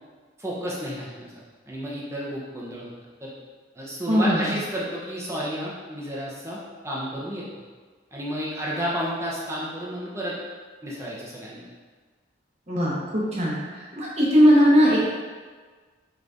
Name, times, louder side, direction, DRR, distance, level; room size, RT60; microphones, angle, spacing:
voice 1, 0.4-1.3 1.7-2.9 3.2-3.3 3.7-6.6 6.8-7.4 8.1-10.3 10.8-11.7, equal, 15° right, -6 dB, 0.8 m, -31 dB
voice 2, 4.1-4.4 12.7-15.0, equal, 40° right, -6 dB, 1.1 m, -19 dB
5.5 x 3.2 x 2.6 m, 1.5 s
head